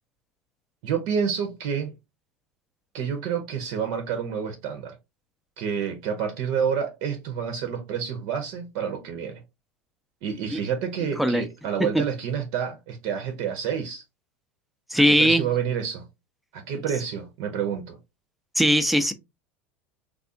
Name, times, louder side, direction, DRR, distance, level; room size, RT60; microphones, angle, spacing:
voice 1, 0.8-1.9 2.9-5.0 5.6-9.4 10.2-14.0 15.1-16.0 16.5-18.0, right 7 dB, 55° right, 0.7 m, -29 dB
voice 2, 14.9-15.4 18.6-19.1, equal, ahead, 0.6 m, -19 dB
3.4 x 2.4 x 2.7 m
hypercardioid pair, 80°, 7 cm